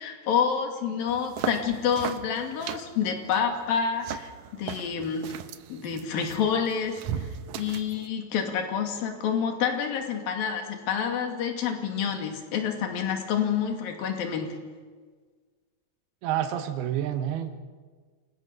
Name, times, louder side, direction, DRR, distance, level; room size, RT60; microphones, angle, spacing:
voice 1, 0.0-5.4 5.7-7.3 7.6-14.6, left 7 dB, 70° left, 4 dB, 4.1 m, -28 dB
sound 1, 1.1-8.1, right 9 dB, 70° right, 1.8 m, -38 dB
voice 2, 16.2-17.6, right 10 dB, 90° right, 7 dB, 3.2 m, -29 dB
28.5 x 23.5 x 6.9 m, 1.5 s
omnidirectional pair, 4.3 m